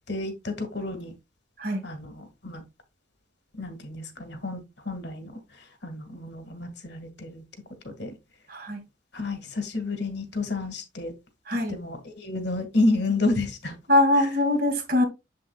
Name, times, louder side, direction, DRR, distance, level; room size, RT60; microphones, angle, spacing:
voice 1, 0.1-1.1 1.8-2.6 3.5-7.4 7.8-8.2 9.1-11.1 11.7-13.8 14.2-14.3, left 2 dB, 65° left, 1.8 m, -30 dB
voice 2, 8.5-8.8 11.5-11.8 13.9-15.0, left 1 dB, 55° right, 2.4 m, -22 dB
7.6 x 7.2 x 2.3 m
head